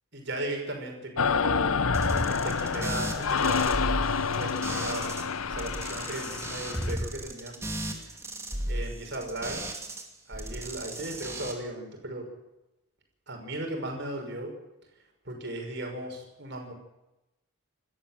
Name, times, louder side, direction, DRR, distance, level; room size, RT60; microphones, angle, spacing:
voice 1, 0.1-1.8 2.3-4.0 4.3-5.1 5.5-7.6 8.7-9.6 10.3-12.3 13.3-14.5 15.2-16.7, right 1 dB, 55° right, 3 dB, 5.8 m, -36 dB
sound 1, 1.2-6.9, left 5 dB, 90° left, 0.9 m, -28 dB
sound 2, 1.9-5.2 5.5-10.0 10.3-11.5, right 1 dB, 15° right, 2.6 m, -35 dB
27.0 x 13.5 x 7.6 m, 0.94 s
head